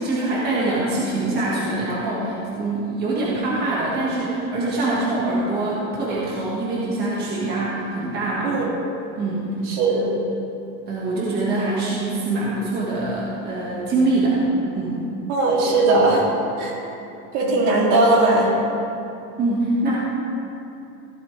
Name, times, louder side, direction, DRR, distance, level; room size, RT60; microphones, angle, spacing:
voice 1, 0.0-8.6 9.1-9.5 9.9-10.1 10.9-14.4 14.7-15.0 19.4-20.0, right 2 dB, 20° right, -7 dB, 1.7 m, -24 dB
voice 2, 15.3-16.2 16.6-16.7 17.3-18.5, right 2 dB, 55° right, -3 dB, 2.8 m, -18 dB
15.5 x 11.5 x 3.4 m, 2.8 s
supercardioid pair, 175°, 44 cm